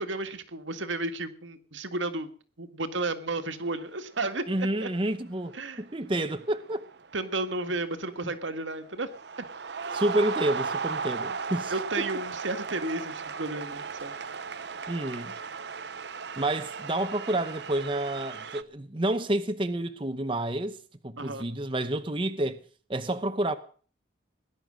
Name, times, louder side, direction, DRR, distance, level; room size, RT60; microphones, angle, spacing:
voice 1, 0.0-2.3 2.6-4.9 5.5-5.8 7.1-9.1 11.7-14.1 21.2-21.5, right 2 dB, 80° right, 1.8 m, -33 dB
sound 1, 3.4-3.8 4.1-4.6 5.5-5.7 6.2-8.4 8.7-18.6, right 5 dB, 60° right, 0.8 m, -36 dB
voice 2, 4.5-6.9 8.2-8.3 9.9-12.1 14.9-15.3 16.4-20.8 21.0-22.6 22.9-23.6, right 1 dB, 25° right, 0.9 m, -29 dB
19.0 x 11.0 x 6.4 m
head